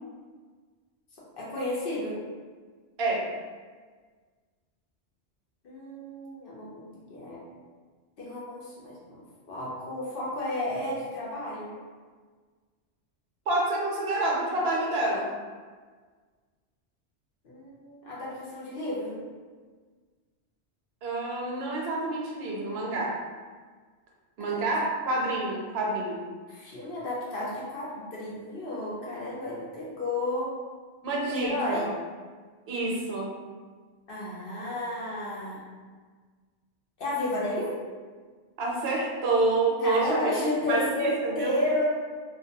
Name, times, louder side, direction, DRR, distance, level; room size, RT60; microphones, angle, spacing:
voice 1, 1.4-2.2 5.6-7.4 8.2-9.2 9.5-11.7 17.4-19.2 24.4-24.6 26.5-30.5 31.4-31.9 34.1-35.6 37.0-37.8 39.8-41.8, left 1 dB, 60° left, -6 dB, 0.7 m, -32 dB
voice 2, 13.5-15.3 21.0-23.1 24.4-26.2 31.0-31.9 32.7-33.3 38.6-41.5, right 2 dB, 70° right, -2 dB, 0.8 m, -28 dB
2.2 x 2.1 x 2.6 m, 1.5 s
omnidirectional pair, 1.2 m